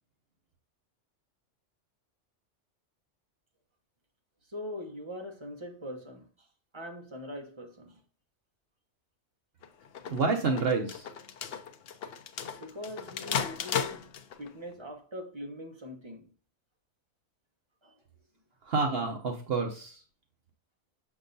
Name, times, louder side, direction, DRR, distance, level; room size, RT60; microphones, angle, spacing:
voice 1, 4.5-6.5 6.7-8.0 12.6-14.1 14.4-16.3 17.8-18.0, left 1 dB, 25° right, 1.1 m, -42 dB
sound 1, 9.6-14.5, left 7 dB, 60° left, 0.8 m, -35 dB
voice 2, 10.1-11.1 18.6-20.0, right 4 dB, 60° right, 1.0 m, -29 dB
6.4 x 6.0 x 2.6 m
omnidirectional pair, 1.2 m